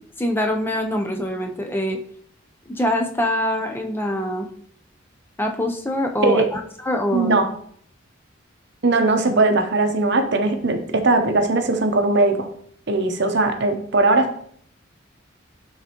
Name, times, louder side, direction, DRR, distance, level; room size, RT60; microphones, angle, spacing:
voice 1, 0.2-2.0 2.7-4.5 5.4-7.3, left 1 dB, 10° left, 3 dB, 0.6 m, -24 dB
voice 2, 7.1-7.5 8.8-12.5 12.9-14.3, right 2 dB, 60° right, 6 dB, 0.8 m, -19 dB
11.0 x 3.7 x 2.9 m, 0.63 s
head